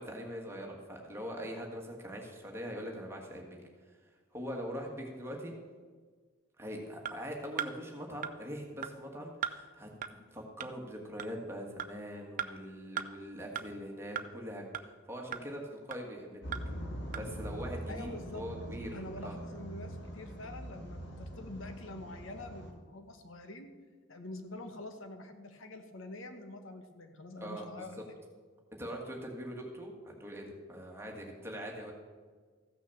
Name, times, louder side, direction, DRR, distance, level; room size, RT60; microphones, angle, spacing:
voice 1, 0.0-3.6 4.3-5.5 6.6-16.5 17.1-18.1 18.3-19.4 27.4-27.9 28.7-31.9, equal, 10° right, 0 dB, 1.7 m, -42 dB
sound 1, 7.0-7.1 7.6-7.7 8.2-8.3 8.8-8.9 9.4-9.6 10.0-10.1 10.6-10.7 11.2-11.3 11.8-11.9 12.4-12.5 13.0-13.1 13.6-13.7 14.2-14.3 14.7-14.8 15.3-15.4 15.9-16.0 16.5-16.6 17.1-17.2, right 8 dB, 40° right, 0.5 m, -36 dB
sound 2, 16.4-22.7, equal, 55° left, 1.9 m, -43 dB
voice 2, 17.9-18.4 18.9-23.7 24.1-28.0, left 2 dB, 75° left, 6 dB, 1.2 m, -46 dB
14.5 x 6.2 x 7.1 m, 1.5 s
head